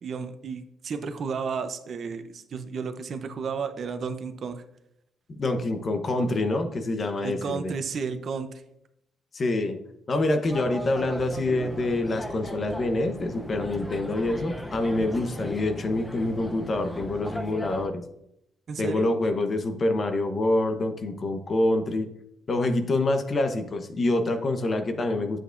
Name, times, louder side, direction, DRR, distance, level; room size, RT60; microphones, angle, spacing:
voice 1, 0.0-4.6 7.2-8.6 18.7-19.1, right 5 dB, 55° right, 9 dB, 0.7 m, -33 dB
voice 2, 5.4-7.7 9.3-9.8 10.1-18.0 18.8-22.1 22.5-25.4, left 2 dB, 40° left, 6 dB, 0.9 m, -26 dB
sound 1, 10.4-17.9, equal, 5° left, 0.7 m, -37 dB
9.0 x 7.6 x 2.6 m, 0.79 s
cardioid pair, 90°, 0 cm